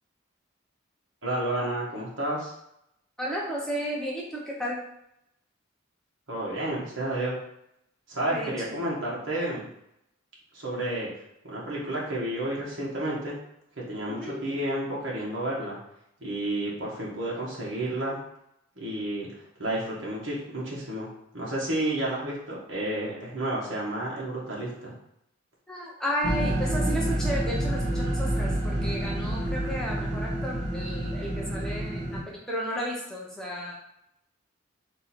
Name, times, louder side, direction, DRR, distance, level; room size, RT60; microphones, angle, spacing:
voice 1, 1.2-2.5 6.3-7.3 8.1-9.7 10.5-11.1 11.4-13.4 13.9-15.8 16.2-18.2 18.8-19.3 19.6-21.1 21.3-24.9, right 1 dB, 65° right, -5 dB, 1.3 m, -31 dB
voice 2, 3.2-4.8 8.3-8.5 14.1-14.4 25.7-33.7, equal, 5° left, -4 dB, 0.6 m, -33 dB
sound 1, 26.2-32.2, right 1 dB, 30° right, 1.1 m, -28 dB
3.8 x 2.7 x 4.3 m, 0.78 s
head